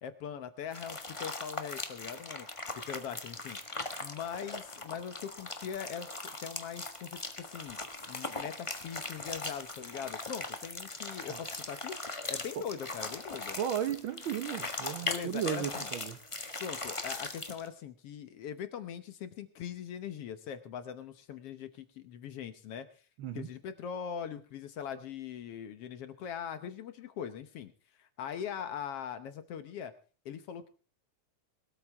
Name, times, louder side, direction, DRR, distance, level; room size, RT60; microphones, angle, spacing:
voice 1, 0.0-2.5 2.9-3.6 4.0-6.1 6.4-7.8 8.1-12.0 12.3-13.6 15.0-15.9 16.6-22.9 23.3-27.7 28.0-29.9 30.2-30.7, left 8 dB, 65° left, 11 dB, 1.7 m, -41 dB
sound 1, 0.7-17.7, left 2 dB, 35° left, 0.4 m, -40 dB
voice 2, 13.6-16.2 23.2-23.5, right 10 dB, 75° right, 10 dB, 1.1 m, -35 dB
21.5 x 13.0 x 3.5 m, 0.36 s
omnidirectional pair, 3.3 m